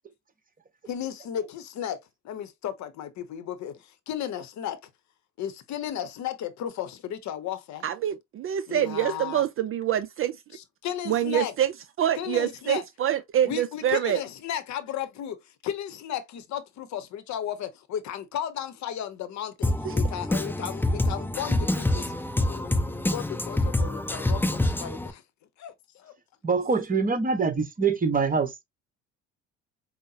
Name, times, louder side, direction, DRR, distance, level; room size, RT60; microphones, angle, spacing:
voice 1, 0.9-4.8 5.4-7.8 8.7-9.4 10.5-11.5 12.2-12.8 13.4-25.2 25.6-26.1, left 10 dB, 55° left, 0.8 m, -34 dB
voice 2, 7.8-10.4 11.1-14.2 19.8-20.0, right 11 dB, 40° right, 0.4 m, -26 dB
Drum kit, 19.6-25.1, left 1 dB, 5° left, 0.6 m, -26 dB
voice 3, 26.4-28.6, right 5 dB, 25° right, 1.1 m, -24 dB
5.3 x 2.1 x 2.8 m
hypercardioid pair, 70°, 34 cm